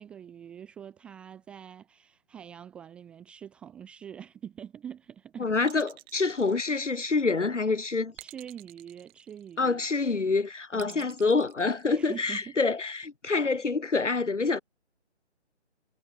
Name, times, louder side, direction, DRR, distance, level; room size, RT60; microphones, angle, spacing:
voice 1, 0.0-5.5 7.3-7.8 8.2-9.8 10.7-11.1 11.9-12.5, right 8 dB, 5° right, 0.8 m, -45 dB
voice 2, 5.4-8.1 9.6-14.6, left 4 dB, 90° left, 0.9 m, -27 dB
sound 1, 5.6-7.3 8.2-9.8 10.8-12.4, right 21 dB, 20° right, 5.0 m, -50 dB
figure-of-eight pair, 145°, 35 cm